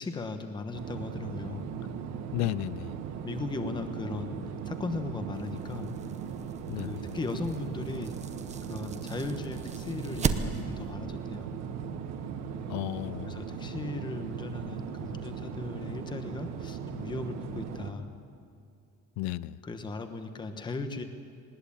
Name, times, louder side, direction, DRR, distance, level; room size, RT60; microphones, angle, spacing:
voice 1, 0.0-1.7 3.2-5.9 6.8-8.1 8.7-11.6 13.3-18.1 19.6-21.0, left 3 dB, 15° left, 7 dB, 1.1 m, -37 dB
sound 1, 0.7-17.9, right 7 dB, 60° right, 1.6 m, -38 dB
voice 2, 2.3-3.0 6.7-7.0 12.7-13.3 19.2-19.6, left 15 dB, 65° left, 19 dB, 0.6 m, -33 dB
sound 2, 5.3-10.9, right 6 dB, 20° right, 0.8 m, -37 dB
20.5 x 19.0 x 8.6 m, 2.4 s
cardioid pair, 170°, 31 cm